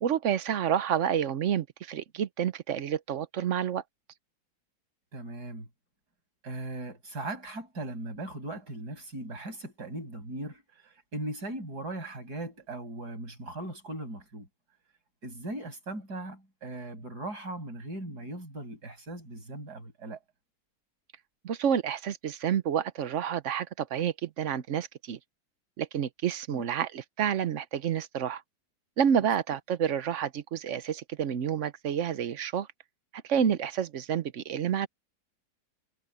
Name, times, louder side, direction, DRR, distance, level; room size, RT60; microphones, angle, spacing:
voice 1, 0.0-3.8 21.4-25.2 25.8-28.4 29.0-32.7 33.2-34.9, right 8 dB, 55° right, 1.0 m, -29 dB
voice 2, 5.1-5.7 6.4-14.5 15.2-20.2 26.5-26.6 29.2-29.3, right 1 dB, 90° right, 7.1 m, -39 dB
omnidirectional pair, 1.7 m